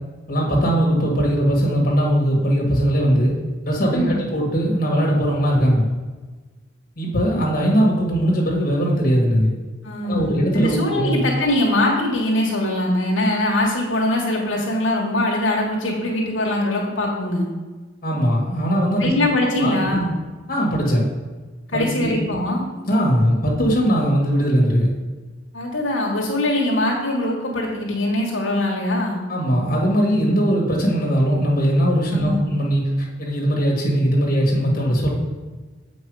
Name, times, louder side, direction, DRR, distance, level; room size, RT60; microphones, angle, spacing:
voice 1, 0.3-3.3 3.6-5.9 7.0-9.5 10.0-11.2 18.0-19.1 19.6-20.0 20.5-21.1 21.7-22.2 22.9-24.9 29.3-35.1, equal, 45° left, -3 dB, 1.9 m, -20 dB
voice 2, 9.8-17.4 19.0-20.1 21.7-22.6 25.5-29.2 32.1-32.4, left 1 dB, 90° left, -2 dB, 1.5 m, -22 dB
7.7 x 5.3 x 4.8 m, 1.3 s
head